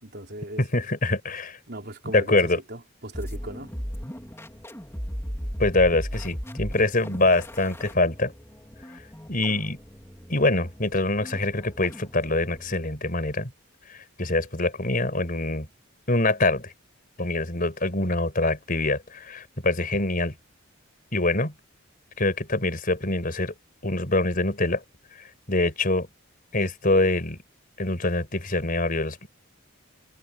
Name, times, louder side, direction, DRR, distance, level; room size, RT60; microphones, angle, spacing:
voice 1, 0.0-0.7 1.7-2.4 2.7-3.7, right 1 dB, 50° right, 4.4 m, -37 dB
voice 2, 0.6-1.6 2.1-2.6 5.6-8.3 9.3-9.8 10.3-13.5 13.9-15.7 16.1-16.7 17.2-20.3 21.1-21.5 22.2-23.5 23.8-24.8 25.5-26.1 26.5-27.4 27.8-29.3, left 2 dB, 40° left, 5.3 m, -24 dB
sound 1, 3.1-12.8, equal, 10° left, 3.9 m, -37 dB
head